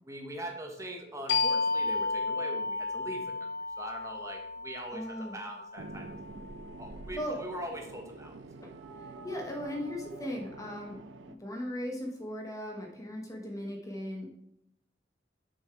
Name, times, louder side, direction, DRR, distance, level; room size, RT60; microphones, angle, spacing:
voice 1, 0.0-3.5 3.8-6.0 6.8-8.3, right 1 dB, 15° right, 1 dB, 1.2 m, -41 dB
sound 1, 1.3-6.6, left 3 dB, 60° left, 0.9 m, -33 dB
voice 2, 4.9-5.4 7.1-7.4 8.6-8.7 9.0-14.3, left 1 dB, 20° left, 2 dB, 1.0 m, -38 dB
sound 2, 5.8-11.4, right 2 dB, 80° right, 0.6 m, -46 dB
6.4 x 5.6 x 4.5 m, 0.77 s
head